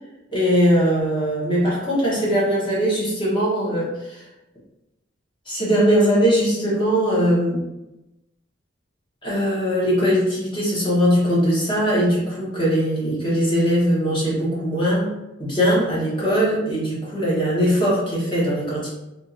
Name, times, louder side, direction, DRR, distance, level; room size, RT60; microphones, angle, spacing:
voice 1, 0.3-4.2 5.5-7.6 9.2-18.9, equal, 25° left, -6 dB, 1.1 m, -20 dB
3.5 x 2.5 x 2.7 m, 0.95 s
head